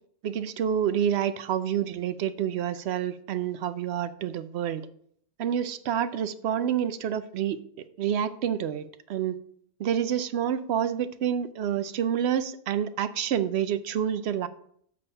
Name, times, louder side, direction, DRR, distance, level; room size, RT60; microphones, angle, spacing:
voice 1, 0.2-4.8 5.4-7.6 8.0-8.8 9.1-9.4 9.8-14.5, right 9 dB, 65° right, 13 dB, 0.8 m, -28 dB
7.3 x 4.3 x 5.4 m, 0.64 s
omnidirectional pair, 1.3 m